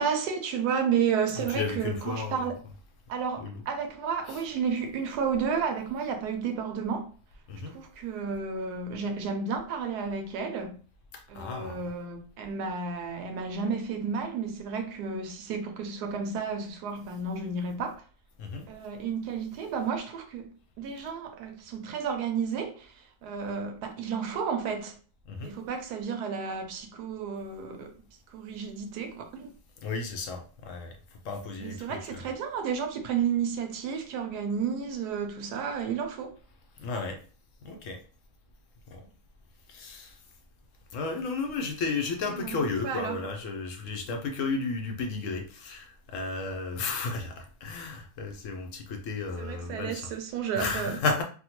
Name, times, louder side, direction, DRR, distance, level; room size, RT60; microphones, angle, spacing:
voice 1, 0.0-2.6 3.1-7.1 7.6-10.8 11.3-18.0 18.7-20.5 20.8-25.0 25.4-27.9 28.3-29.5 31.6-36.4 42.3-43.2 49.4-51.0, right 6 dB, 90° right, 1.2 m, -32 dB
voice 2, 1.4-2.5 3.4-3.6 4.3-4.4 7.5-7.7 11.1-11.8 18.4-18.7 25.3-25.5 29.8-31.0 31.2-32.3 36.8-37.2 37.6-38.0 38.9-39.0 39.7-40.2 40.9-50.1 50.6-51.2, left 4 dB, 65° left, 0.8 m, -33 dB
3.5 x 2.2 x 2.9 m
omnidirectional pair, 1.7 m